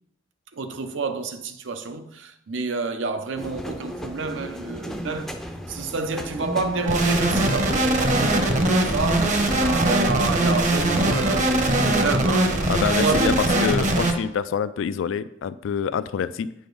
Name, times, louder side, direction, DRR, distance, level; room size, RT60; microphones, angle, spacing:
voice 1, 0.5-5.4 5.7-12.6 13.0-13.4, right 3 dB, 80° right, 0.6 m, -29 dB
sound 1, 3.3-11.8, equal, ahead, 0.4 m, -34 dB
sound 2, 6.9-14.1, right 1 dB, 40° right, 0.8 m, -21 dB
voice 2, 12.7-13.4 13.6-16.5, left 7 dB, 85° left, 0.3 m, -26 dB
8.7 x 5.1 x 3.9 m
head